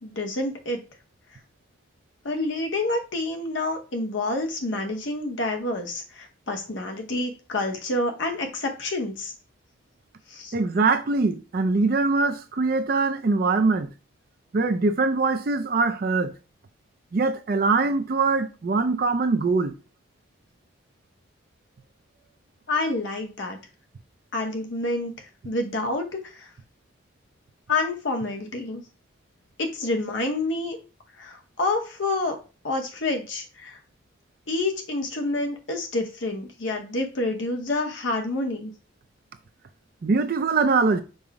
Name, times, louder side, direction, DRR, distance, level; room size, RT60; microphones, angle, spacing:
voice 1, 0.0-0.8 2.2-9.3 10.3-10.5 22.7-23.6 24.3-25.1 25.4-26.5 27.7-28.8 29.6-30.8 31.2-32.4 32.6-33.8 34.5-38.7, left 2 dB, 70° left, 0.9 m, -28 dB
voice 2, 10.5-13.9 14.5-16.3 17.1-19.7 40.0-41.0, right 3 dB, 50° right, 0.4 m, -22 dB
5.3 x 2.1 x 4.7 m
head